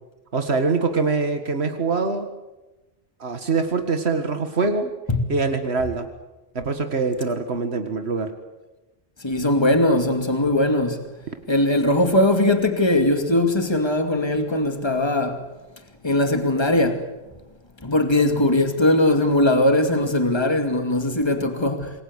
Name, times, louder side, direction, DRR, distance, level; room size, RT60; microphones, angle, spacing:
voice 1, 0.3-2.3 3.2-4.9 5.3-6.1 6.6-8.3, right 4 dB, 85° right, 2.1 m, -24 dB
voice 2, 9.2-11.0 11.5-15.4 16.0-17.0 17.8-21.9, left 1 dB, 25° left, 2.5 m, -20 dB
27.0 x 23.0 x 8.2 m
omnidirectional pair, 1.1 m